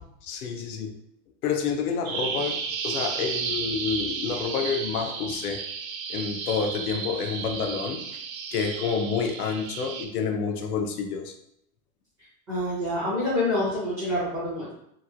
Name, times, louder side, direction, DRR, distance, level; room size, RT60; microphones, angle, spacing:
voice 1, 0.2-0.9 1.4-5.6 6.1-8.0 8.5-11.3, left 5 dB, 75° left, 4 dB, 0.6 m, -29 dB
Bird vocalization bird call bird song, 2.0-10.0, right 5 dB, 65° right, 0.5 m, -33 dB
voice 2, 12.5-14.7, left 1 dB, 5° right, -13 dB, 0.5 m, -27 dB
3.0 x 2.5 x 2.4 m, 0.74 s
supercardioid pair, 175°, 46 cm